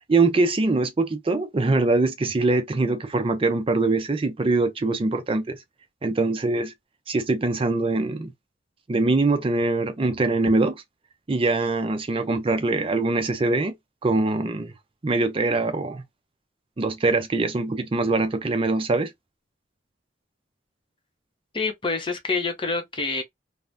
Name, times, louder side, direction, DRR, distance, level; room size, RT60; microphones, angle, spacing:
voice 1, 0.1-5.6 6.0-6.7 7.1-8.3 8.9-10.8 11.3-13.7 14.0-14.7 15.0-16.0 16.8-19.1, right 3 dB, 30° right, 0.4 m, -23 dB
voice 2, 21.5-23.2, left 4 dB, 25° left, 0.6 m, -27 dB
2.7 x 2.0 x 3.2 m
head